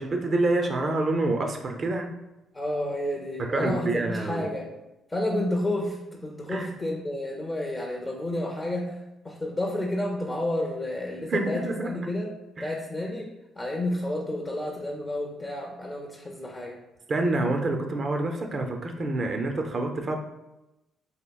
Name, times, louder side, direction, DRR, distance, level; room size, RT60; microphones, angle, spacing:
voice 1, 0.0-2.1 3.4-4.5 6.5-6.7 11.3-11.9 12.6-12.8 17.1-20.2, right 2 dB, 45° right, 4 dB, 0.5 m, -27 dB
voice 2, 2.5-4.7 5.1-9.0 9.2-12.3 12.6-16.8, left 1 dB, 20° left, 0 dB, 0.5 m, -30 dB
4.3 x 2.7 x 2.3 m, 0.96 s
cardioid pair, 90°, 0 cm